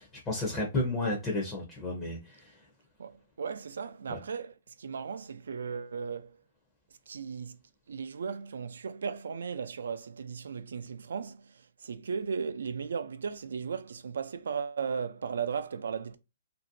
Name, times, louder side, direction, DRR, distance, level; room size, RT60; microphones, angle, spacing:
voice 1, 0.0-2.6 4.1-4.2, left 2 dB, 10° left, 0.6 m, -32 dB
voice 2, 3.0-6.4 7.1-7.6 7.9-16.2, right 6 dB, 90° right, 0.4 m, -36 dB
2.9 x 2.6 x 2.6 m
hypercardioid pair, 175°, 0 cm